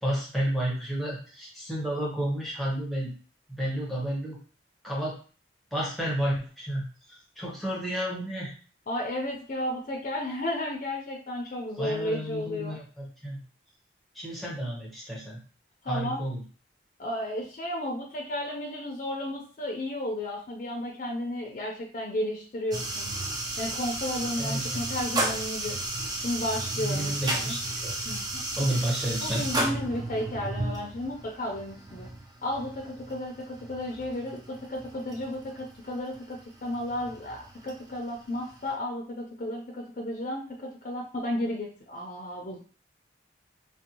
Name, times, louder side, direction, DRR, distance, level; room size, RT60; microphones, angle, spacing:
voice 1, 0.0-3.1 3.5-4.4 4.8-5.2 5.7-8.5 11.8-13.4 14.1-15.4 15.9-16.4 24.4-25.0 26.8-27.9 28.6-29.5, right 1 dB, ahead, -6 dB, 0.7 m, -31 dB
voice 2, 8.9-12.8 15.8-16.2 17.0-23.1 23.6-25.8 26.2-27.6 28.0-28.3 28.6-28.9 29.2-32.1 32.4-42.6, left 1 dB, 45° left, -1 dB, 0.5 m, -33 dB
sound 1, 22.7-38.7, right 2 dB, 20° right, 0.3 m, -34 dB
2.6 x 2.1 x 2.8 m, 0.39 s
head